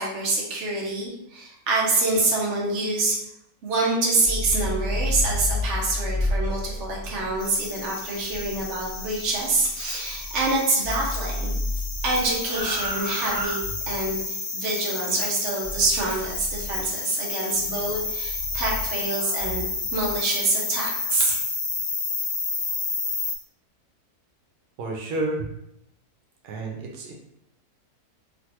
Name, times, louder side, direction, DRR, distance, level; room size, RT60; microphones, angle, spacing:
voice 1, 0.0-3.2 3.6-11.5 12.0-13.6 13.9-19.6 19.9-21.3, right 2 dB, 55° right, -3 dB, 1.1 m, -26 dB
sound 1, 4.1-10.6 10.8-14.2 15.6-16.9 17.5-20.2, left 1 dB, 5° right, 1.1 m, -31 dB
sound 2, 7.4-23.4, left 4 dB, 55° left, 0.9 m, -31 dB
voice 2, 24.8-25.5 26.4-27.1, right 2 dB, 85° right, 0 dB, 1.2 m, -30 dB
3.2 x 2.4 x 2.8 m, 0.79 s
omnidirectional pair, 1.6 m